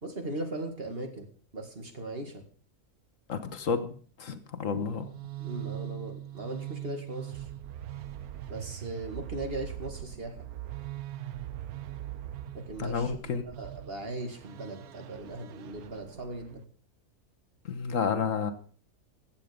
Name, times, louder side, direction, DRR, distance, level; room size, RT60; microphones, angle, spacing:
voice 1, 0.0-1.3 1.5-2.4 5.4-7.5 8.5-10.5 12.5-16.6, right 1 dB, 40° right, 5 dB, 2.3 m, -38 dB
voice 2, 3.3-5.1 12.8-13.5 17.7-18.5, left 5 dB, 60° left, 8 dB, 1.4 m, -31 dB
sound 1, 4.8-16.6, right 13 dB, 75° right, 1.2 m, -41 dB
15.5 x 9.2 x 5.1 m, 0.43 s
omnidirectional pair, 1.6 m